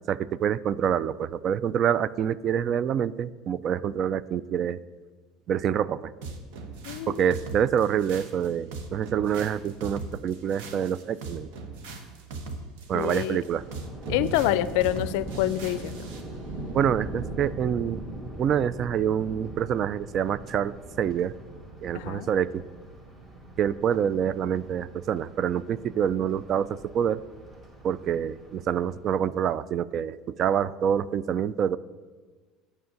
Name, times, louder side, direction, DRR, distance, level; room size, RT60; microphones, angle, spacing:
voice 1, 0.1-4.8 5.5-6.1 7.1-11.5 12.9-13.6 16.7-18.0 18.4-21.3 21.8-22.6 23.6-27.2 27.8-31.8, right 8 dB, 50° right, 18 dB, 0.3 m, -26 dB
sound 1, 6.2-16.3, right 3 dB, 80° right, 1.0 m, -40 dB
voice 2, 6.9-7.2 12.9-13.4 14.1-16.1 21.9-22.3, left 14 dB, 75° left, 16 dB, 0.4 m, -27 dB
Thunder, 13.3-29.3, right 2 dB, 30° right, 2.0 m, -40 dB
7.0 x 5.9 x 7.6 m, 1.4 s
supercardioid pair, 95°, 0 cm